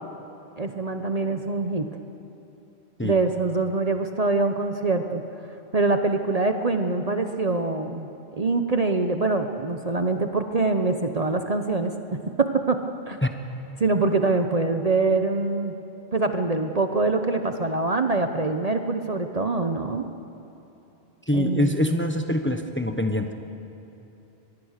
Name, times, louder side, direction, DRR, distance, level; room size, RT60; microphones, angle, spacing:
voice 1, 0.6-1.9 3.0-5.2 5.7-8.1 8.4-12.8 13.1-13.2 13.8-15.7 16.1-20.1 21.3-21.7, right 3 dB, 35° right, 6 dB, 1.0 m, -24 dB
voice 2, 21.3-23.3, left 1 dB, 10° left, 6 dB, 1.1 m, -24 dB
24.0 x 21.5 x 6.6 m, 3.0 s
omnidirectional pair, 1.1 m